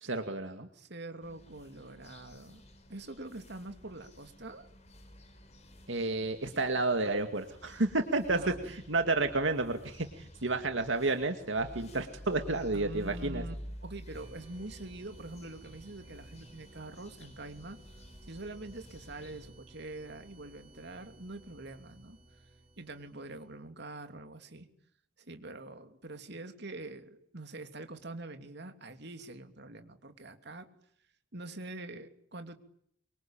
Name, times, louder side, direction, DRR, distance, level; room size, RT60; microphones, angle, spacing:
voice 1, 0.0-0.7 5.9-13.4, right 2 dB, 80° right, 6 dB, 2.2 m, -31 dB
voice 2, 0.7-2.6 2.9-4.7 8.3-8.6 12.7-13.5 13.8-22.2 22.8-24.7 25.2-30.7 31.3-32.6, right 2 dB, 60° right, 7 dB, 3.1 m, -45 dB
sound 1, 1.2-19.5, equal, 35° left, 5.5 m, -51 dB
sound 2, 14.1-23.5, right 1 dB, 30° right, 7.8 m, -56 dB
25.5 x 25.0 x 9.0 m, 0.69 s
head